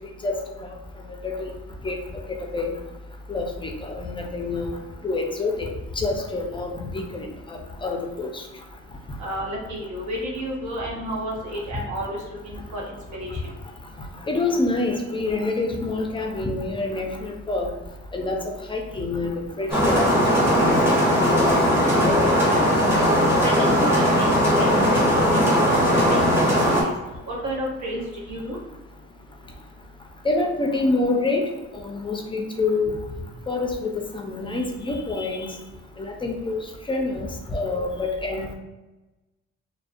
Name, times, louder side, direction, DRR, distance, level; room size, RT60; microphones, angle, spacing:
voice 1, 1.2-1.5 1.8-2.0 2.5-2.7 3.3-4.7 5.0-5.7 6.0-8.4 14.3-17.7 18.1-18.4 18.7-21.0 21.2-22.6 30.2-31.4 31.8-33.0 33.5-33.9 34.1-35.5 36.0-36.6 36.9-38.5, left 3 dB, 15° left, 3 dB, 0.3 m, -27 dB
voice 2, 9.2-13.4 23.4-25.4 25.7-26.9 27.3-28.6, equal, 70° right, -3 dB, 0.9 m, -31 dB
sound 1, 19.7-26.8, equal, 10° right, 0.7 m, -19 dB
2.4 x 2.1 x 2.5 m, 1.1 s
cardioid pair, 90°, 30 cm